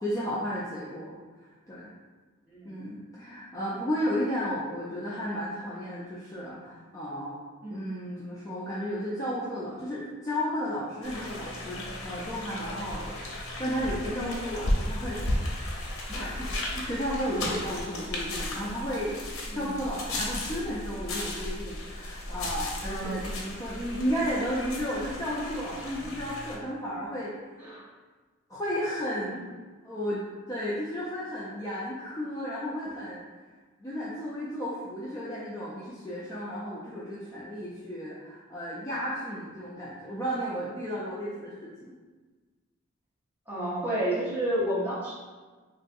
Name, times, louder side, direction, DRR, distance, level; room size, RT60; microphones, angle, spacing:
voice 1, 0.0-1.9 2.6-7.4 7.7-15.6 16.1-19.2 19.5-27.3 28.5-29.5 29.8-30.2 30.5-33.2 33.8-41.9, equal, 15° left, -8 dB, 0.3 m, -33 dB
voice 2, 2.5-2.8 7.6-7.9 14.1-14.3 19.5-19.7 20.1-20.2 20.6-20.7 22.9-23.2 27.6-27.9 29.3-29.4 43.5-45.1, right 1 dB, 10° right, -9 dB, 0.8 m, -31 dB
sound 1, 11.0-26.6, left 1 dB, 65° left, 0.6 m, -35 dB
3.5 x 2.3 x 2.5 m, 1.4 s
head